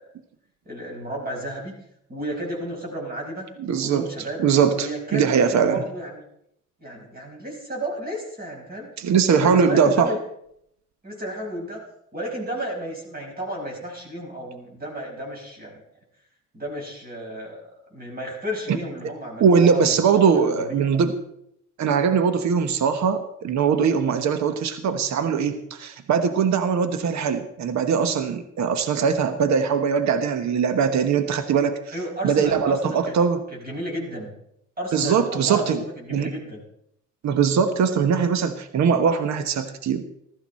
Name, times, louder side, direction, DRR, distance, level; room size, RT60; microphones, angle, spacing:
voice 1, 0.7-1.7 2.1-3.5 3.8-4.4 4.8-6.2 6.8-8.9 9.4-10.2 11.0-11.8 12.1-15.8 16.5-20.0 20.3-20.8 31.9-33.1 33.5-34.3 34.8-35.7 36.0-36.6, equal, 30° right, -1 dB, 5.4 m, -33 dB
voice 2, 3.6-4.1 4.4-5.8 9.0-10.1 18.7-18.8 19.4-21.2 21.8-31.9 32.2-33.4 34.9-35.8 36.1-36.3 37.2-40.0, right 6 dB, 65° right, 10 dB, 1.2 m, -21 dB
15.0 x 13.0 x 4.3 m, 0.73 s
cardioid pair, 90°, 30 cm